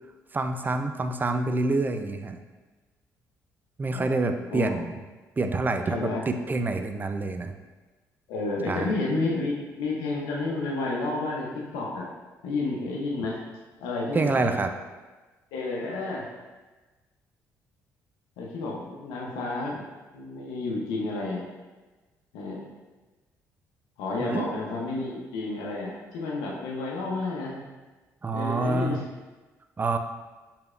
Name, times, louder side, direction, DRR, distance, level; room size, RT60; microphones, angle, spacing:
voice 1, 0.3-2.4 3.8-5.0 5.4-7.5 8.7-8.9 14.1-14.7 24.2-24.5 28.2-29.0 29.8-30.0, right 3 dB, 25° right, 7 dB, 0.4 m, -27 dB
voice 2, 8.3-11.5 11.7-12.1 12.4-13.4 13.8-14.6 15.5-16.2 18.4-19.8 20.1-21.5 22.3-22.6 24.0-27.6 28.3-29.0, left 3 dB, 85° left, -2 dB, 0.8 m, -30 dB
4.6 x 3.4 x 2.5 m, 1.2 s
supercardioid pair, 60°, 7 cm